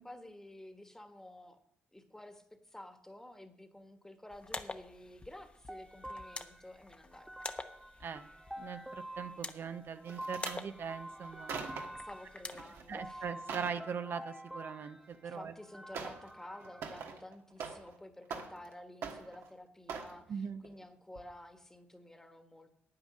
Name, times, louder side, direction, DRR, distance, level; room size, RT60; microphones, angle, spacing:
voice 1, 0.0-1.6 1.9-7.3 12.0-13.3 15.2-22.7, left 1 dB, 10° left, 7 dB, 1.4 m, -51 dB
sound 1, 4.3-13.3, left 3 dB, 25° left, 0.9 m, -48 dB
sound 2, 5.7-17.0, right 1 dB, 5° right, 0.9 m, -48 dB
voice 2, 8.6-11.5 12.9-15.5 20.3-20.6, right 6 dB, 60° right, 9 dB, 0.6 m, -41 dB
sound 3, 10.1-10.6 11.2-12.0 12.5-12.8 13.2-13.8 15.1-15.2 15.9-16.3 16.6-18.0 18.2-18.7 19.0-19.5 19.9-20.2 20.6-20.8 21.2-21.3, right 5 dB, 80° right, 1.4 m, -43 dB
9.0 x 8.8 x 6.3 m, 0.76 s
cardioid pair, 70°, 4 cm